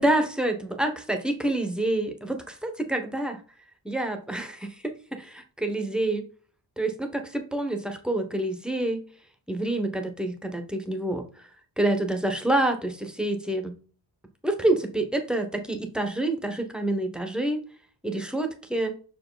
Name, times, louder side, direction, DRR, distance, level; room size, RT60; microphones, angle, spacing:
voice 1, 0.0-3.4 3.8-6.3 6.8-9.0 9.5-11.2 11.8-13.7 14.4-17.6 18.0-18.9, right 1 dB, ahead, 6 dB, 1.2 m, -27 dB
6.2 x 4.9 x 4.0 m, 0.39 s
wide cardioid pair, 95°, 41 cm